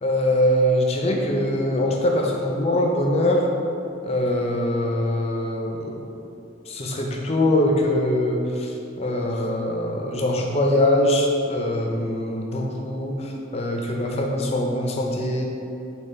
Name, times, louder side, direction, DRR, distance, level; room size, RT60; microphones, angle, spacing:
voice 1, 0.0-3.5 4.0-6.1 6.7-15.4, left 1 dB, 35° left, 0 dB, 0.5 m, -23 dB
3.7 x 3.0 x 4.3 m, 2.7 s
head